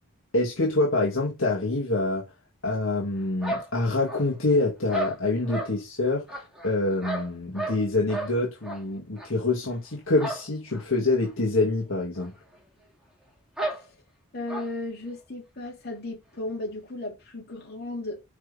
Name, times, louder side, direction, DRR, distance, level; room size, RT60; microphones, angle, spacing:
voice 1, 0.3-2.2 2.6-12.3, left 2 dB, 70° left, 1.9 m, -26 dB
sound 1, 3.4-4.5 4.9-5.7 6.3-7.8 8.1-8.3 8.6-8.8 9.2-9.3 10.2-10.5 10.7-10.8 11.2-11.3 12.2-12.3 12.5-12.6 13.6-13.8 14.5-14.7, right 2 dB, 5° right, 2.1 m, -33 dB
voice 2, 14.3-18.2, left 2 dB, 45° left, 3.2 m, -35 dB
6.1 x 4.9 x 4.1 m
head